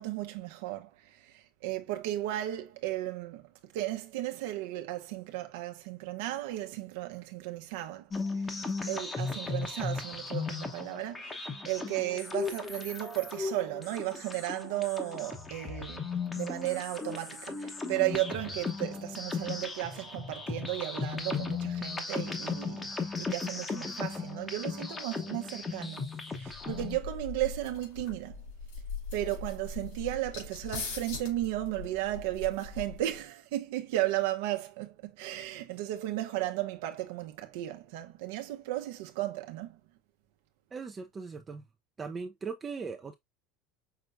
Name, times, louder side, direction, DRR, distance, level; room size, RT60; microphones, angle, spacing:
voice 1, 0.0-8.1 8.5-16.1 16.4-28.4 29.1-39.8, right 15 dB, 80° right, 0.9 m, -35 dB
sound 1, 8.1-27.0, left 4 dB, 15° left, 1.0 m, -36 dB
sound 2, 26.5-33.2, left 4 dB, 80° left, 3.2 m, -41 dB
voice 2, 40.7-41.7 42.0-43.1, right 5 dB, 20° right, 0.6 m, -39 dB
5.9 x 3.3 x 2.5 m
supercardioid pair, 140°, 0 cm